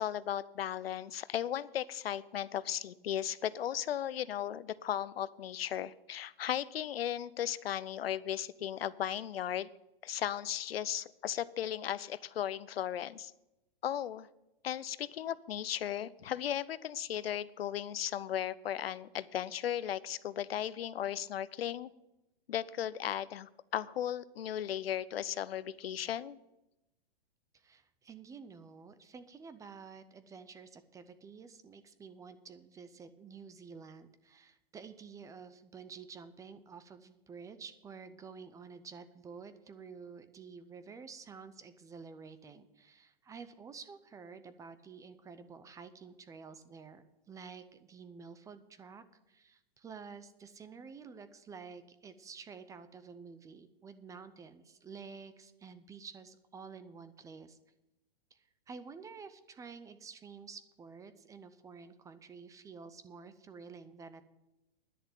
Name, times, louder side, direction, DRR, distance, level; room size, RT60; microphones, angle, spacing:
voice 1, 0.0-9.7 10.0-13.3 13.8-14.3 14.6-21.9 22.5-26.4, left 10 dB, 85° left, 18 dB, 0.6 m, -36 dB
voice 2, 27.5-57.6 58.3-64.2, right 5 dB, 10° right, 12 dB, 0.5 m, -50 dB
10.5 x 6.6 x 9.0 m, 0.94 s
hypercardioid pair, 130°, 29 cm